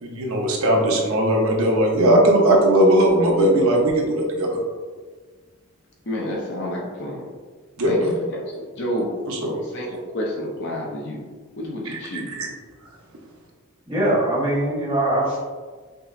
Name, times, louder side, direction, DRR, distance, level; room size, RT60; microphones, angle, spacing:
voice 1, 0.0-4.6 7.8-8.2 9.3-9.5, right 1 dB, 70° right, -1 dB, 0.7 m, -18 dB
voice 2, 6.1-7.3 7.8-9.1 9.6-11.2 11.6-12.5, equal, 50° left, -2 dB, 0.6 m, -30 dB
voice 3, 13.9-15.4, right 1 dB, 20° right, -7 dB, 1.1 m, -21 dB
5.2 x 2.0 x 2.5 m, 1.4 s
head